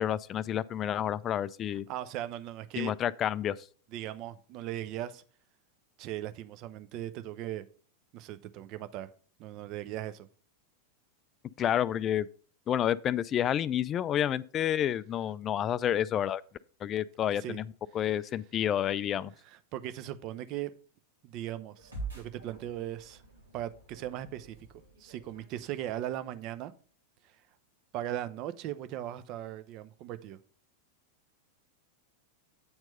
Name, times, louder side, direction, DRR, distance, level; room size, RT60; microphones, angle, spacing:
voice 1, 0.0-1.9 2.8-3.6 11.6-12.3 12.7-16.4 16.8-17.6 17.9-19.3, left 10 dB, 30° left, 0.3 m, -29 dB
voice 2, 1.9-2.9 3.9-5.2 6.0-7.6 8.1-9.1 9.4-10.3 17.3-17.6 19.4-20.7 21.2-23.2 23.5-24.6 25.0-26.7 27.3-27.4 27.9-30.4, right 12 dB, 40° right, 0.6 m, -38 dB
sound 1, 21.8-26.4, right 3 dB, 75° right, 2.8 m, -46 dB
8.5 x 4.5 x 5.4 m
figure-of-eight pair, 90°, 0 cm